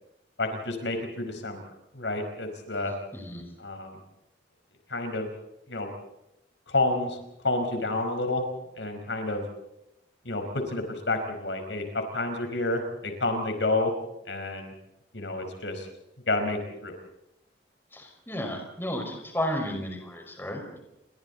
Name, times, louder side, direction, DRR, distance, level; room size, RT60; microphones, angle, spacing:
voice 1, 0.4-1.6 1.9-2.9 3.6-4.0 4.9-5.3 5.7-5.9 6.7-7.2 7.4-8.4 8.8-9.4 10.2-13.9 14.2-14.7 15.1-15.9 16.3-17.0, left 2 dB, 80° left, 5 dB, 4.9 m, -29 dB
voice 2, 3.1-3.4 17.9-20.8, equal, 15° left, 3 dB, 5.3 m, -33 dB
30.0 x 24.5 x 4.2 m, 0.87 s
head